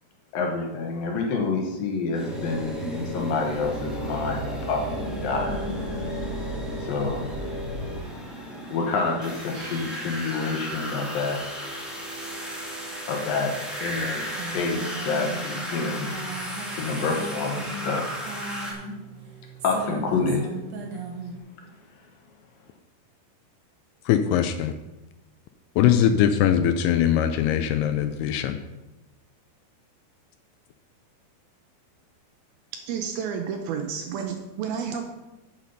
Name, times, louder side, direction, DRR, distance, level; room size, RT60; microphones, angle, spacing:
voice 1, 0.3-5.6 6.8-7.2 8.7-11.4 13.1-13.5 13.8-16.1 16.7-18.3 19.6-20.5, left 4 dB, 65° left, 1 dB, 2.7 m, -28 dB
sound 1, 2.1-18.7, equal, ahead, 0.6 m, -36 dB
sound 2, 2.2-7.9, equal, 20° left, 2.6 m, -33 dB
sound 3, 9.5-21.4, right 3 dB, 60° right, 2.2 m, -39 dB
voice 2, 24.1-24.7 25.8-28.6, left 9 dB, 80° left, 9 dB, 2.5 m, -21 dB
voice 3, 32.9-35.0, right 7 dB, 75° right, 4 dB, 2.3 m, -30 dB
8.4 x 8.3 x 5.3 m, 1.0 s
omnidirectional pair, 4.9 m